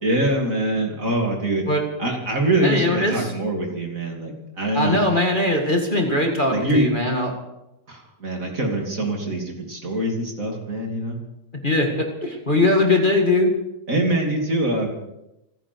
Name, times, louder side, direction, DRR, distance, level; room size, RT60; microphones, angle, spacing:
voice 1, 0.0-1.6 2.0-5.0 6.5-6.9 7.9-11.2 13.9-14.9, right 1 dB, 45° right, 1 dB, 3.3 m, -24 dB
voice 2, 2.6-3.3 4.7-7.3 11.5-13.5, left 2 dB, 25° left, 2 dB, 2.1 m, -20 dB
29.0 x 10.5 x 4.7 m, 0.89 s
omnidirectional pair, 2.0 m